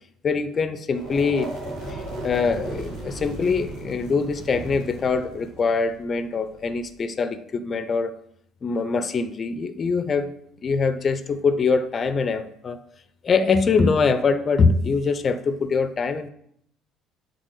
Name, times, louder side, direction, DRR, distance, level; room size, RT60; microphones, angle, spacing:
voice 1, 0.2-1.5 1.9-8.1 8.6-10.3 10.6-12.8 13.2-16.3, left 4 dB, 35° left, 12 dB, 0.6 m, -23 dB
sound 1, 0.9-6.9, right 2 dB, 80° right, 3.1 m, -36 dB
7.4 x 4.3 x 4.8 m, 0.71 s
figure-of-eight pair, 55°, 0 cm